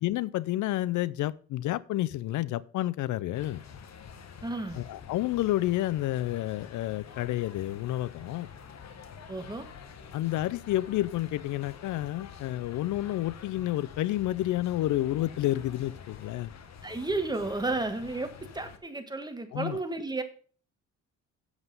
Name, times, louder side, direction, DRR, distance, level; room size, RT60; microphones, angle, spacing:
voice 1, 0.0-3.6 4.7-8.5 10.1-16.5 19.5-19.8, left 15 dB, 75° left, 0.5 m, -30 dB
sound 1, 3.3-18.8, left 6 dB, 60° left, 1.5 m, -47 dB
voice 2, 4.4-4.8 9.3-9.7 16.8-20.2, right 2 dB, 15° right, 1.7 m, -32 dB
8.1 x 7.8 x 5.4 m
cardioid pair, 90°, 30 cm